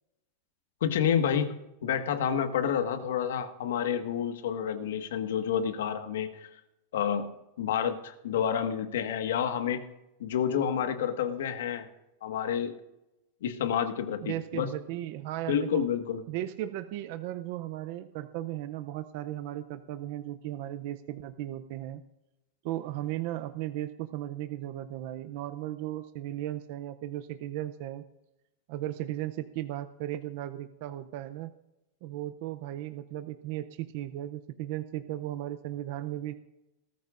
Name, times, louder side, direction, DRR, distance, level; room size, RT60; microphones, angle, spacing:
voice 1, 0.8-6.5 6.9-7.3 7.6-9.8 10.2-11.9 12.2-12.7 13.4-14.7 15.5-16.2, left 8 dB, 90° left, 8 dB, 1.5 m, -29 dB
voice 2, 14.2-15.9 16.3-22.0 22.6-28.0 28.7-31.5 32.0-36.3, right 13 dB, 40° right, 10 dB, 0.5 m, -36 dB
19.5 x 13.5 x 2.5 m, 0.93 s
supercardioid pair, 180°, 0 cm